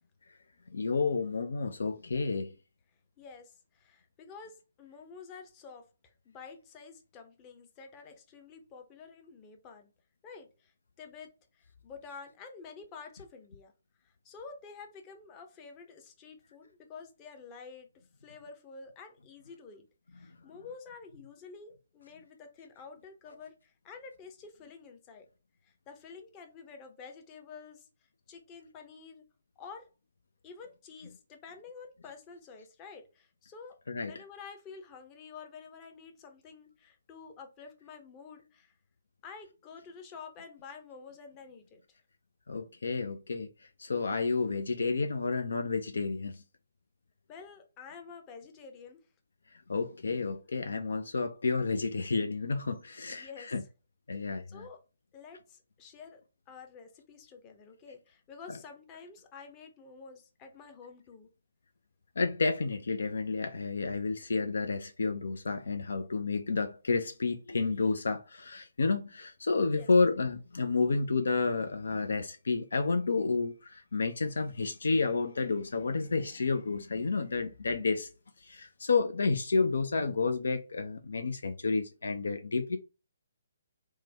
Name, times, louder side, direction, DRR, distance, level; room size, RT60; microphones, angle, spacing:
voice 1, 0.7-2.5 33.9-34.1 42.5-43.5 43.8-46.4 49.7-53.6 54.1-54.7 58.5-58.6 62.2-78.1 78.4-82.8, left 4 dB, 65° left, 0.3 m, -30 dB
voice 2, 3.2-9.9 10.2-13.7 14.0-17.9 18.2-19.9 20.1-25.3 25.6-27.9 28.3-29.2 29.6-29.8 30.4-33.7 34.1-38.7 39.2-41.8 47.3-49.0 53.1-53.5 54.1-54.8 55.1-56.2 56.5-61.3 69.7-69.9, left 5 dB, 25° left, 0.6 m, -49 dB
3.1 x 2.1 x 3.3 m
figure-of-eight pair, 135°, 0 cm